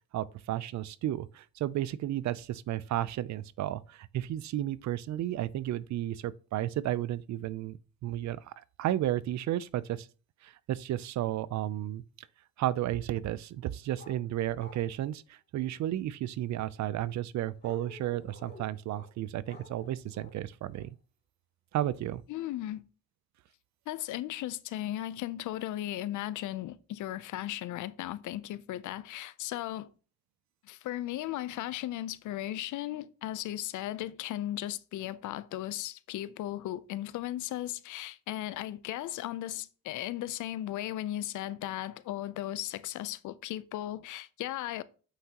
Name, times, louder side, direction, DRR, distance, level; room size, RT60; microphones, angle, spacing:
voice 1, 0.1-7.8 8.0-10.1 10.4-12.0 12.6-20.9 21.7-22.2, right 13 dB, 65° right, 0.5 m, -33 dB
sound 1, 14.0-14.2 14.5-14.9 17.6-19.1 19.4-20.3 20.7-20.9, left 2 dB, 35° left, 2.6 m, -51 dB
voice 2, 22.3-22.8 23.9-29.9 30.6-44.8, left 13 dB, 80° left, 0.6 m, -36 dB
8.2 x 5.8 x 2.9 m
cardioid pair, 90°, 30 cm